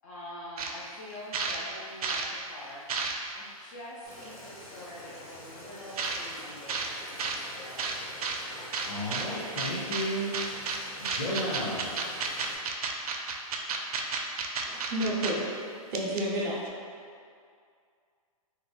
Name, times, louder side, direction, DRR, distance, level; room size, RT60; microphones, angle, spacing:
voice 1, 0.0-2.8 3.3-8.3, left 1 dB, 30° left, -7 dB, 0.3 m, -45 dB
sound 1, 0.6-0.7 1.1-2.3 2.7-3.4 4.2-4.3 6.0-6.2 6.7-6.9 7.2-7.4 7.8-8.4 8.7-9.2 9.6-10.0 10.3-10.8 11.0-15.3 15.6-15.7 15.9-16.4, right 5 dB, 85° right, 0.4 m, -31 dB
Boiling, 4.0-12.5, left 1 dB, 90° left, 0.9 m, -47 dB
voice 2, 8.9-10.3 11.0-11.9, equal, 50° left, -9 dB, 1.3 m, -33 dB
voice 3, 14.6-15.4 15.9-16.6, right 1 dB, 30° right, -6 dB, 0.5 m, -30 dB
2.5 x 2.3 x 3.2 m, 2.2 s
hypercardioid pair, 160°, 19 cm